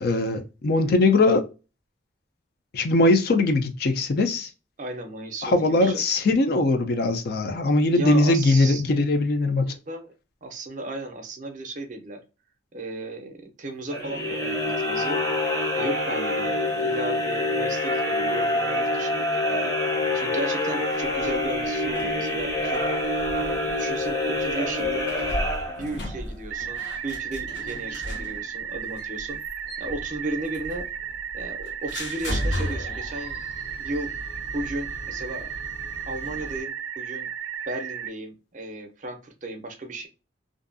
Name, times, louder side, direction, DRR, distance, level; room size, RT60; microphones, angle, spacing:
voice 1, 0.0-1.5 2.7-4.5 5.4-9.7, left 2 dB, 55° left, 0.4 m, -21 dB
voice 2, 4.8-6.1 7.9-8.8 9.7-10.1 10.4-12.2 12.7-15.2 15.7-19.7 20.1-22.9 23.3-25.1 25.7-29.4 29.8-30.9 31.3-33.4 33.8-34.1 34.5-35.5 36.0-37.3 37.7-40.1, right 2 dB, 40° right, 0.5 m, -35 dB
sound 1, 13.9-26.2, left 1 dB, 20° left, 0.6 m, -26 dB
sound 2, 20.9-36.6, equal, 70° left, 0.8 m, -36 dB
sound 3, 26.5-38.1, right 8 dB, 90° right, 0.3 m, -34 dB
2.5 x 2.3 x 2.5 m
head